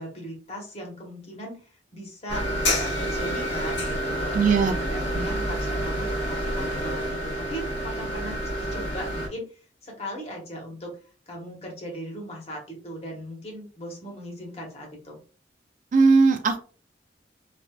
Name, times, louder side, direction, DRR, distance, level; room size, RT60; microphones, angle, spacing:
voice 1, 0.0-1.6 1.9-2.4 2.8-9.4 9.8-10.9 11.3-15.2, equal, 35° left, 0 dB, 1.0 m, -38 dB
sound 1, 2.3-9.3, equal, 65° left, 1.2 m, -28 dB
voice 2, 4.3-4.8 5.1-5.3 15.9-16.6, right 4 dB, 45° right, 7 dB, 0.4 m, -19 dB
3.3 x 2.5 x 2.3 m, 0.37 s
head